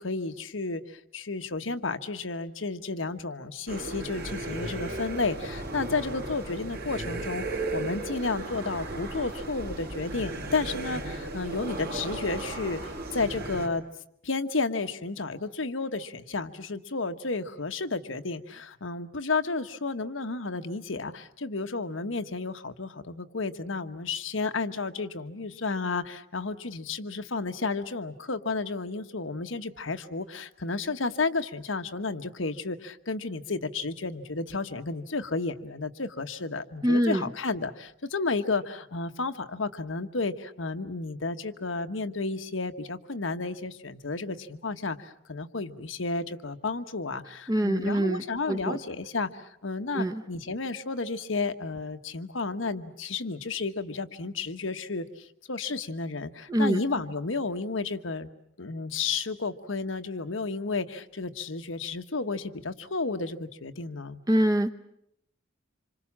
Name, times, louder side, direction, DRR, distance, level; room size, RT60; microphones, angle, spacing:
voice 1, 0.0-13.8 14.2-58.3 58.6-64.2, left 3 dB, 85° left, 9 dB, 1.3 m, -32 dB
sound 1, 3.7-13.7, right 2 dB, 55° right, 3.2 m, -35 dB
voice 2, 36.8-37.3 47.5-48.2 48.5-48.8 49.9-50.2 56.5-56.8 64.3-64.7, right 1 dB, 20° right, 7 dB, 1.0 m, -24 dB
27.0 x 26.0 x 7.4 m, 0.74 s
head